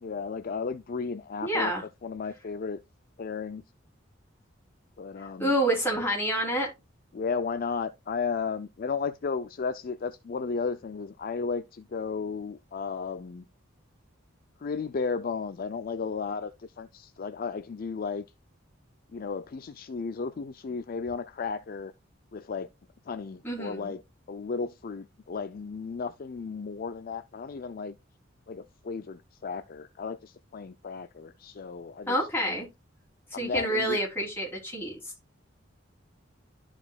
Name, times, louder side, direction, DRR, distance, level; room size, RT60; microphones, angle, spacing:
voice 1, 0.0-1.7 2.0-2.8 3.2-3.6 5.0-5.5 7.1-13.4 14.6-18.3 19.1-21.9 22.3-22.7 23.1-24.0 24.3-28.0 28.5-32.6 33.3-34.0, left 5 dB, 45° left, 0.4 m, -34 dB
voice 2, 1.4-1.8 5.4-6.7 23.4-23.9 32.1-32.7 33.4-34.9, right 1 dB, 10° left, 3.3 m, -28 dB
12.5 x 4.9 x 2.3 m
head